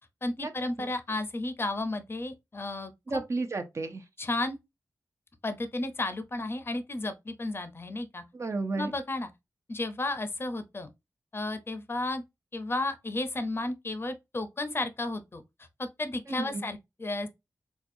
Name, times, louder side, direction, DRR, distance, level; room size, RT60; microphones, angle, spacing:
voice 1, 0.2-3.2 4.2-4.6 5.4-8.2 8.7-9.3 9.7-10.9 11.3-12.2 12.5-15.4 15.8-17.3, left 2 dB, 35° left, 0.6 m, -33 dB
voice 2, 3.1-4.0 8.3-8.9 16.3-16.7, right 3 dB, 45° right, 0.6 m, -32 dB
4.2 x 2.3 x 2.6 m
wide cardioid pair, 85°, 7 cm